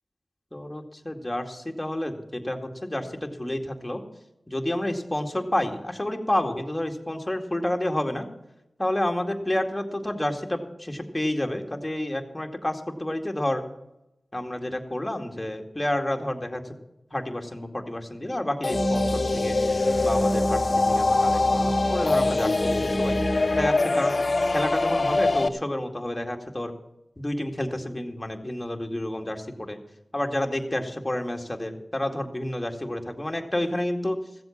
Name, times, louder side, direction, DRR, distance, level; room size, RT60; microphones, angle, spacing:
voice 1, 0.5-4.0 4.5-8.3 8.8-13.6 14.3-16.6 17.1-19.6 20.0-23.2 23.5-24.2 24.5-26.7 27.2-29.8 30.1-34.2, left 1 dB, 20° left, 3 dB, 2.2 m, -29 dB
sound 1, 18.6-25.5, left 3 dB, 55° left, 0.8 m, -23 dB
sound 2, 18.7-23.7, right 1 dB, 35° right, 1.2 m, -30 dB
15.5 x 7.9 x 7.3 m, 0.91 s
cardioid pair, 40°, 0 cm